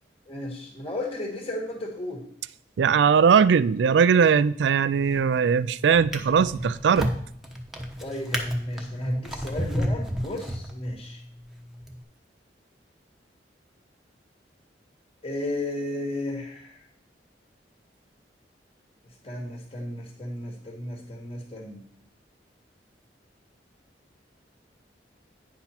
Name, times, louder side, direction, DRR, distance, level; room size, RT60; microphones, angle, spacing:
voice 1, 0.3-2.2 8.0-11.2 15.2-16.8 19.2-21.8, left 1 dB, 30° left, 1.5 m, -34 dB
voice 2, 2.8-7.1, right 6 dB, 90° right, 0.4 m, -20 dB
Drawer open or close, 4.9-5.4 5.9-11.1 11.8-12.0, equal, ahead, 1.0 m, -31 dB
9.5 x 5.8 x 4.4 m
head